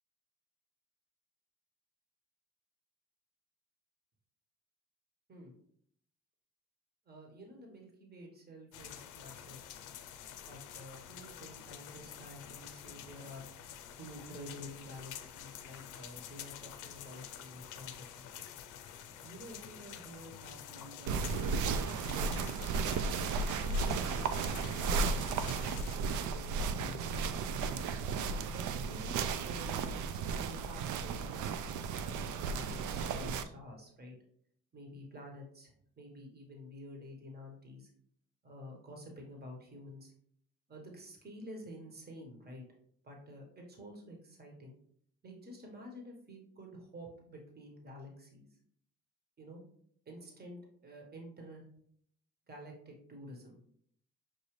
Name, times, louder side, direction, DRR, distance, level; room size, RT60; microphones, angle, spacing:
voice 1, 7.1-9.6 10.5-13.4 14.0-18.3 19.2-21.5 21.7-22.6 23.3-27.1 28.3-34.1 34.7-37.9 38.4-40.1 40.7-42.6 43.0-44.7 45.2-48.5 49.4-49.6 50.1-51.6 52.5-53.6, equal, 30° right, 1 dB, 1.3 m, -50 dB
sound 1, 8.7-26.0, left 9 dB, 85° left, 0.5 m, -48 dB
sound 2, 21.1-33.4, right 5 dB, 75° right, 0.5 m, -34 dB
6.1 x 2.6 x 3.2 m, 0.64 s
cardioid pair, 90°, 30 cm